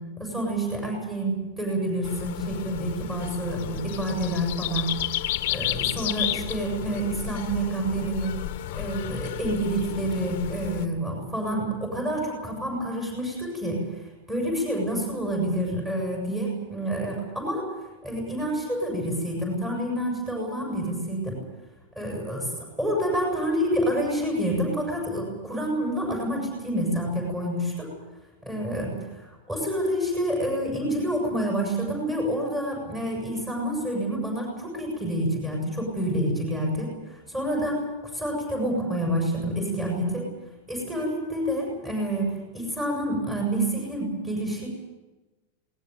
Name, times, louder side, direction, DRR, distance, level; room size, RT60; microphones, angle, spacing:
voice 1, 0.2-5.0 5.5-8.4 8.7-17.7 18.0-21.4 21.9-22.5 22.8-27.9 28.4-37.9 38.1-40.3 40.7-44.7, right 1 dB, 10° right, -1 dB, 6.9 m, -28 dB
sound 1, 2.0-10.9, left 14 dB, 55° left, 1.4 m, -32 dB
21.0 x 19.0 x 9.3 m, 1.1 s
supercardioid pair, 170°, 0 cm